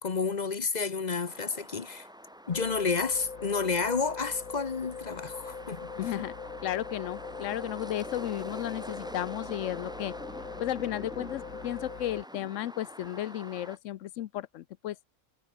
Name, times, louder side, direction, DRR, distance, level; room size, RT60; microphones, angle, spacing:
voice 1, 0.0-2.1 2.5-6.3, left 4 dB, 40° left, 0.9 m, -30 dB
sound 1, 1.3-13.8, equal, 5° right, 2.3 m, -46 dB
sound 2, 2.5-12.2, left 5 dB, 85° left, 2.7 m, -42 dB
voice 2, 6.0-6.3 6.6-10.1 10.6-15.0, left 13 dB, 70° left, 0.9 m, -34 dB
omnidirectional pair, 1.4 m